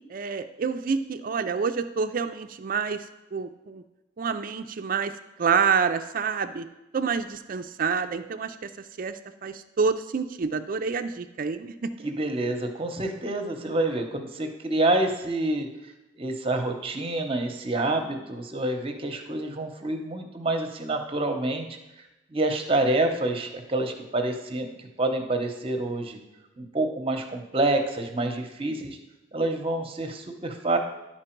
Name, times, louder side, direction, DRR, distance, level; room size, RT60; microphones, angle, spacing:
voice 1, 0.1-3.0 3.3-3.8 4.2-5.1 5.4-6.7 6.9-8.7 9.0-9.1 9.4-11.7 12.0-12.1, right 5 dB, 50° right, 8 dB, 0.4 m, -27 dB
voice 2, 12.0-15.7 16.2-21.7 22.3-26.2 26.6-29.0 29.3-30.8, right 2 dB, 30° right, 5 dB, 0.9 m, -27 dB
11.0 x 4.5 x 4.5 m, 0.99 s
head